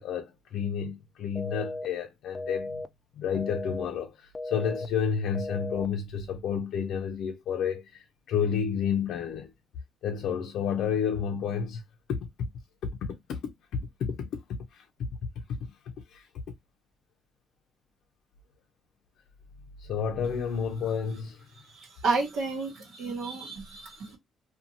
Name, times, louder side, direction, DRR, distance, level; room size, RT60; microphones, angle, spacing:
voice 1, 0.0-2.8 3.2-9.5 10.0-11.8 12.1-12.2 12.8-13.4 13.8-15.1 16.1-16.3 19.8-21.4, left 7 dB, 80° left, 0.5 m, -31 dB
sound 1, 1.4-1.9 2.4-2.9 3.4-3.9 4.4-4.9 5.4-5.9, left 2 dB, 25° left, 0.4 m, -35 dB
voice 2, 21.7-24.2, right 4 dB, 90° right, 1.0 m, -31 dB
2.6 x 2.3 x 2.7 m
cardioid pair, 90°, 0 cm